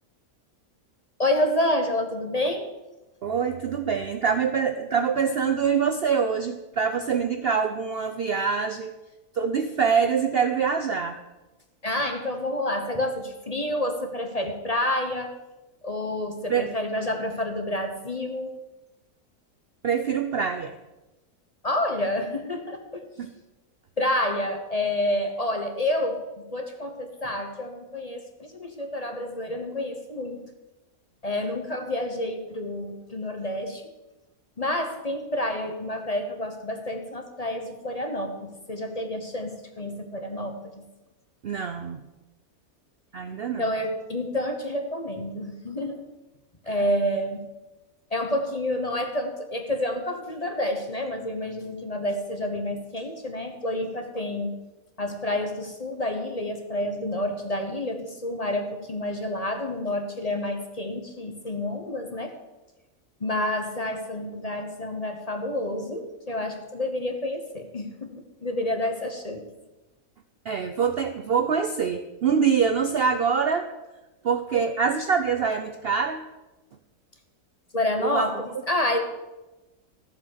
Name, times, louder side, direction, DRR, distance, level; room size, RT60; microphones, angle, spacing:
voice 1, 1.2-2.7 11.8-15.4 15.8-18.5 21.6-23.1 24.0-30.4 31.2-33.8 34.6-40.8 43.6-46.0 46.6-47.5 48.1-54.6 55.0-62.3 63.2-68.1 68.4-69.5 77.7-79.0, left 1 dB, 30° left, 5 dB, 1.0 m, -29 dB
voice 2, 3.2-8.9 9.3-11.2 16.5-16.7 19.8-20.7 23.2-23.3 41.4-42.0 43.1-43.6 70.5-73.7 74.2-76.3 78.0-78.3, right 6 dB, 55° right, 8 dB, 0.7 m, -25 dB
13.5 x 7.3 x 6.5 m, 1.0 s
omnidirectional pair, 1.6 m